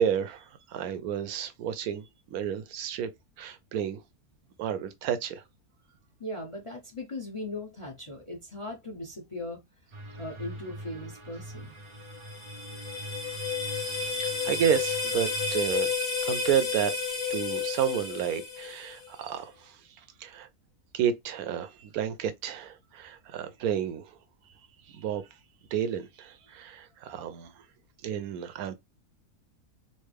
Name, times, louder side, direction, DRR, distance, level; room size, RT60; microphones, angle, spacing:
voice 1, 0.0-2.0 2.3-3.1 3.4-4.0 4.6-5.4 13.9-15.9 16.2-16.9 17.3-19.5 20.2-20.5 20.9-24.1 24.9-25.2 25.7-27.5 28.0-28.7, right 9 dB, 75° right, 1.1 m, -31 dB
voice 2, 6.2-9.6 10.2-11.7, left 2 dB, 30° left, 0.6 m, -38 dB
sound 1, 9.9-15.6, right 1 dB, 35° right, 0.5 m, -43 dB
sound 2, 12.0-19.1, left 5 dB, 60° left, 1.5 m, -31 dB
4.2 x 2.0 x 3.2 m
omnidirectional pair, 1.6 m